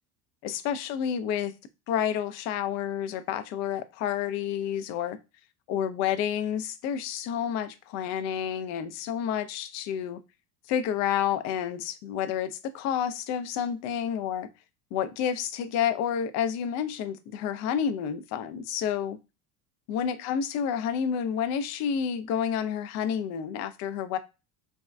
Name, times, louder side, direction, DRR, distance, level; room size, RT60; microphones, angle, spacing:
voice 1, 0.4-1.5 1.9-5.2 5.7-10.2 10.7-14.5 14.9-19.2 19.9-24.2, left 8 dB, 35° left, 10 dB, 0.4 m, -29 dB
3.4 x 2.2 x 2.2 m, 0.27 s
figure-of-eight pair, 70°, 48 cm